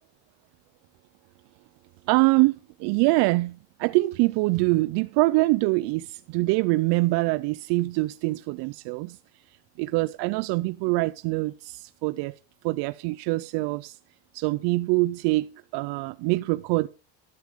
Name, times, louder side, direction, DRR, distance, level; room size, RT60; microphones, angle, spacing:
voice 1, 2.1-9.2 9.5-12.4 12.6-14.0 14.3-16.9, right 22 dB, 75° right, 0.5 m, -24 dB
12.5 x 10.5 x 3.6 m
cardioid pair, 125°, 40 cm